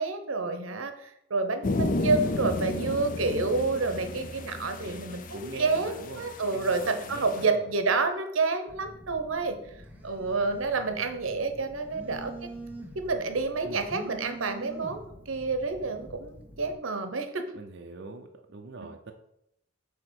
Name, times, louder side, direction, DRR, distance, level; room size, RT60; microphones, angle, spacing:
voice 1, 0.0-9.6 10.0-12.3 12.9-17.4 18.8-18.9, right 3 dB, 90° right, 7 dB, 0.9 m, -29 dB
sound 1, 1.6-7.5, left 2 dB, 40° left, 0.5 m, -33 dB
voice 2, 4.8-6.2 6.5-7.6 13.6-13.9 17.5-19.1, right 3 dB, 60° right, 2 dB, 0.7 m, -43 dB
Telephone, 8.7-16.7, right 2 dB, 10° right, 1.0 m, -45 dB
8.2 x 2.9 x 6.3 m, 0.77 s
head